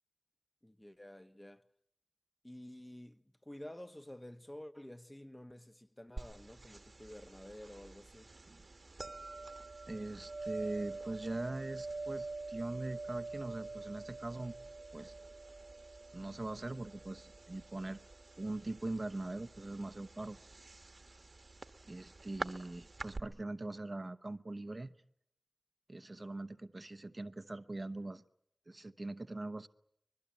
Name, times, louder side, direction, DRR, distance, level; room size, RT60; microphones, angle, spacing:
voice 1, 0.6-1.6 2.4-8.3, left 1 dB, 15° left, 1.1 m, -51 dB
sound 1, 6.2-23.2, right 3 dB, 60° right, 1.5 m, -46 dB
voice 2, 9.9-14.5 14.9-15.1 16.1-18.0 18.4-20.4 21.9-24.9 25.9-28.2 28.7-29.7, right 2 dB, 40° right, 0.9 m, -42 dB
25.0 x 21.5 x 8.7 m
wide cardioid pair, 55°, 0 cm